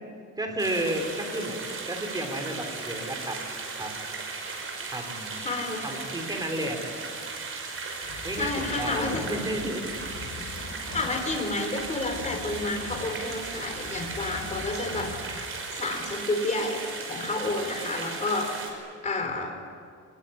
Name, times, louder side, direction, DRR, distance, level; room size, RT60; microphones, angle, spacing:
voice 1, 0.4-1.6 1.9-3.4 3.8-4.1 4.8-5.5 5.8-6.9 8.2-9.9 10.8-10.9, right 1 dB, 15° right, 3 dB, 3.6 m, -32 dB
sound 1, 0.6-18.7, right 4 dB, 45° right, 5.8 m, -36 dB
voice 2, 5.4-6.0 8.4-9.3 10.9-15.2 15.7-18.5 19.0-19.6, left 2 dB, 25° left, 4 dB, 3.7 m, -30 dB
sound 2, 8.0-15.7, left 4 dB, 50° left, 4.7 m, -42 dB
24.0 x 21.0 x 9.9 m, 2.3 s
cardioid pair, 160°, 31 cm